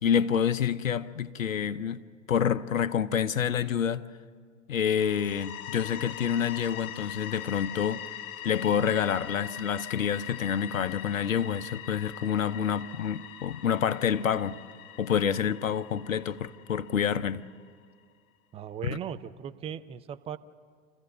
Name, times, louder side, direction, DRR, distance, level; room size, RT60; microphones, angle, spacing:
voice 1, 0.0-2.0 2.3-4.1 4.7-8.0 8.4-14.6 15.0-17.5 18.8-19.0, left 8 dB, 80° left, 0.8 m, -28 dB
sound 1, 5.0-17.7, left 11 dB, 35° left, 0.7 m, -42 dB
voice 2, 18.5-20.4, right 9 dB, 15° right, 0.5 m, -38 dB
27.5 x 15.0 x 6.6 m
figure-of-eight pair, 95°, 40 cm